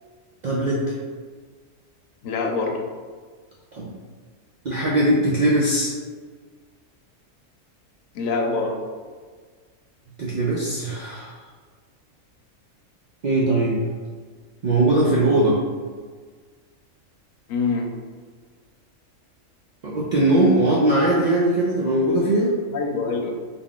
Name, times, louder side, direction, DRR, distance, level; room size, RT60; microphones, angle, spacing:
voice 1, 0.4-0.8 3.7-3.9 4.6-5.9 10.2-11.3 13.2-13.8 14.6-15.6 19.8-22.5, right 1 dB, 70° right, -5 dB, 0.4 m, -20 dB
voice 2, 2.2-2.8 8.1-8.8 17.5-17.9 22.7-23.3, left 4 dB, 90° left, 2 dB, 1.0 m, -24 dB
3.8 x 2.3 x 3.6 m, 1.5 s
omnidirectional pair, 1.4 m